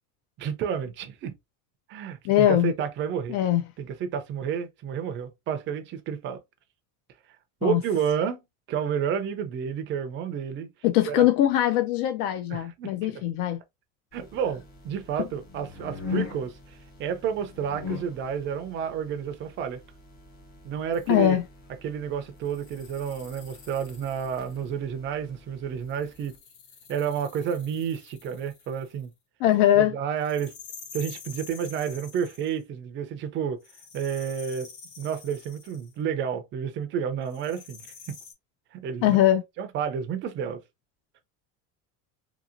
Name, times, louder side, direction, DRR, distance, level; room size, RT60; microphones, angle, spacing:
voice 1, 0.4-1.3 1.9-3.4 3.8-6.4 7.6-8.4 8.7-10.7 11.1-11.2 12.5-13.2 14.1-16.5 17.0-19.8 20.6-21.4 21.8-26.3 26.9-29.1 29.8-30.5 30.9-33.6 33.9-34.7 35.0-37.8 38.7-39.2 39.6-40.6, right 8 dB, 30° right, 0.4 m, -30 dB
voice 2, 2.3-2.7 3.3-3.6 7.6-7.8 10.8-13.6 15.2-15.3 21.1-21.4 29.4-29.9 39.0-39.4, left 12 dB, 60° left, 0.4 m, -21 dB
sound 1, 14.1-26.3, left 5 dB, 25° left, 0.7 m, -41 dB
sound 2, 20.9-21.3 22.4-24.7 25.9-29.1 30.2-32.6 33.6-36.0 37.3-38.3, left 6 dB, 80° left, 1.0 m, -48 dB
2.8 x 2.8 x 2.5 m
cardioid pair, 165°, 37 cm